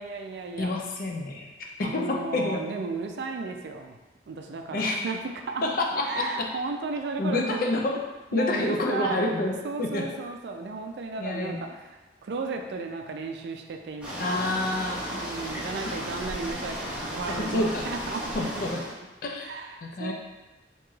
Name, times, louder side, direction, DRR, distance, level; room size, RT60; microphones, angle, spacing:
voice 1, 0.0-0.7 1.8-4.0 4.3-5.2 5.5-5.6 6.0-7.7 8.3-9.2 9.6-14.5 15.1-17.6 17.9-18.2 19.4-20.1, right 4 dB, 70° right, 4 dB, 0.3 m, -34 dB
voice 2, 0.6-2.6 4.7-5.0 5.6-6.5 7.2-8.0 8.3-9.5 9.8-10.1 11.2-11.7 14.2-15.2 17.3-17.9 18.3-18.8 19.2-19.5 19.8-20.1, left 2 dB, 50° left, 1 dB, 0.4 m, -28 dB
sound 1, 14.0-18.9, equal, 5° right, 0.6 m, -35 dB
2.9 x 2.3 x 3.0 m, 1.2 s
head